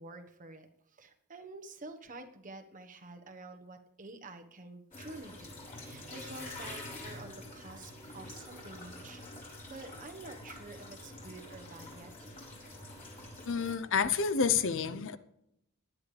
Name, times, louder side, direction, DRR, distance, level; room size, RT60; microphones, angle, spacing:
voice 1, 0.0-12.3, right 2 dB, 35° right, 6 dB, 1.3 m, -49 dB
sound 1, 4.9-13.8, left 1 dB, 40° left, 4.7 m, -47 dB
voice 2, 13.5-15.2, left 6 dB, 60° left, 13 dB, 0.7 m, -29 dB
18.5 x 10.5 x 3.4 m, 0.80 s
head